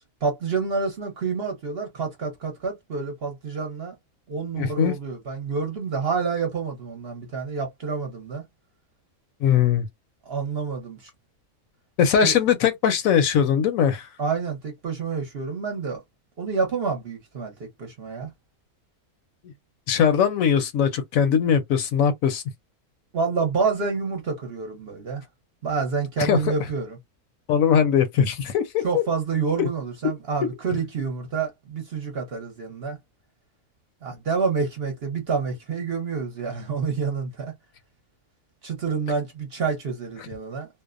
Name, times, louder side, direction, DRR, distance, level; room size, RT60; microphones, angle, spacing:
voice 1, 0.2-3.9 4.3-8.4 10.3-11.1 12.2-12.3 14.2-16.0 16.4-18.3 23.1-25.2 25.6-27.0 28.8-33.0 34.0-37.5 38.6-40.7, right 5 dB, 50° right, 0.9 m, -28 dB
voice 2, 4.6-4.9 9.4-9.9 12.0-14.1 19.9-22.4 26.2-26.5 27.5-29.0 40.2-40.3, left 8 dB, 70° left, 0.9 m, -21 dB
2.6 x 2.1 x 2.4 m
omnidirectional pair, 1.5 m